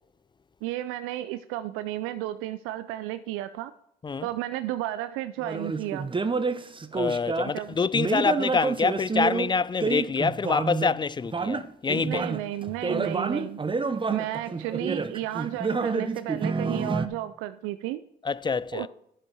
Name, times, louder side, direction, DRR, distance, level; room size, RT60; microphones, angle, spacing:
voice 1, 0.6-3.7 4.2-6.1 7.5-7.8 11.9-13.6 14.1-18.0 18.7-18.9, right 14 dB, 85° right, 0.4 m, -33 dB
sound 1, 5.4-7.5 7.9-11.0 11.2-17.1, right 4 dB, 25° right, 0.7 m, -29 dB
voice 2, 6.9-12.2 18.2-18.9, left 5 dB, 20° left, 0.3 m, -26 dB
9.3 x 7.0 x 4.6 m
hypercardioid pair, 50°, 21 cm